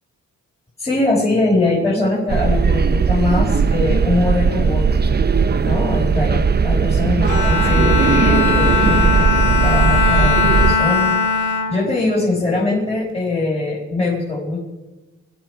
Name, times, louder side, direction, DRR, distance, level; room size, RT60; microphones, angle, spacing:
voice 1, 0.8-5.0 5.6-14.6, left 2 dB, 20° left, -6 dB, 5.2 m, -22 dB
sound 1, 2.3-10.8, right 5 dB, 30° right, 0.7 m, -17 dB
Bowed string instrument, 7.2-12.8, left 4 dB, 65° left, 2.0 m, -20 dB
24.5 x 12.0 x 4.8 m, 1.1 s
cardioid pair, 100°, 32 cm